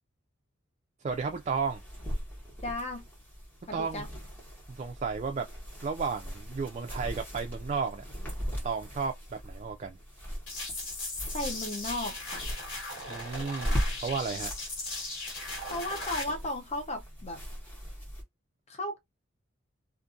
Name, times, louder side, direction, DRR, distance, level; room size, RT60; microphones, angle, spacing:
voice 1, 1.0-1.8 3.7-4.0 4.7-5.5 5.8-8.1 8.5-10.0 13.1-14.5, right 5 dB, 35° right, 0.3 m, -33 dB
sound 1, 1.1-18.2, equal, 10° left, 1.2 m, -39 dB
voice 2, 2.6-3.0 3.7-4.1 11.3-12.4 15.7-17.4 18.7-19.0, left 1 dB, 35° left, 0.7 m, -35 dB
sound 2, 10.5-16.2, left 2 dB, 75° left, 1.5 m, -37 dB
2.5 x 2.5 x 2.5 m
head